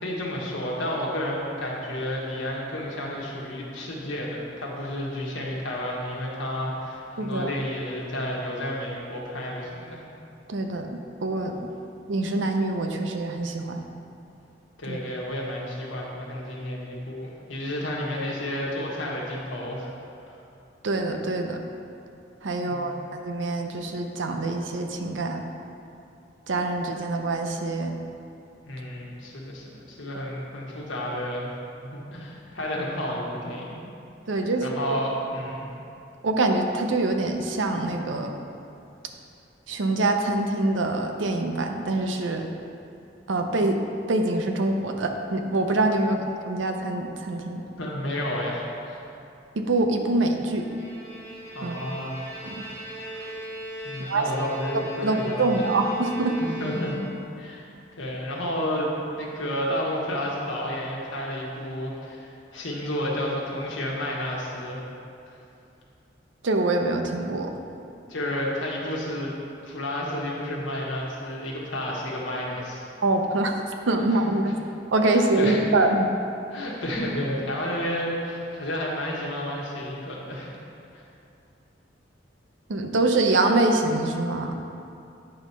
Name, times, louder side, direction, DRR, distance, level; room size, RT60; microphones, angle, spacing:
voice 1, 0.0-10.0 14.8-19.9 20.2-20.4 22.5-23.1 28.6-31.5 31.8-33.8 34.6-35.7 46.0-46.1 47.8-49.0 51.5-52.2 53.8-55.6 56.4-57.0 57.4-57.7 58.0-64.8 68.1-69.3 69.6-72.8 74.1-74.3 75.1-75.6 76.5-80.5 80.9-81.0, left 1 dB, 85° left, -3 dB, 1.3 m, -31 dB
voice 2, 7.2-7.5 10.5-10.9 11.2-11.7 12.1-13.8 14.9-15.0 20.8-21.6 22.4-25.4 26.5-27.9 34.3-34.6 36.2-38.3 39.7-42.4 43.3-43.8 44.1-47.6 49.6-50.7 51.6-51.7 54.0-54.2 55.0-56.4 66.4-67.5 73.0-74.4 74.9-76.1 82.7-84.5, right 2 dB, 75° right, 4 dB, 0.6 m, -25 dB
Bowed string instrument, 50.4-57.4, equal, 40° right, 1.4 m, -38 dB
8.7 x 3.0 x 5.5 m, 2.7 s
head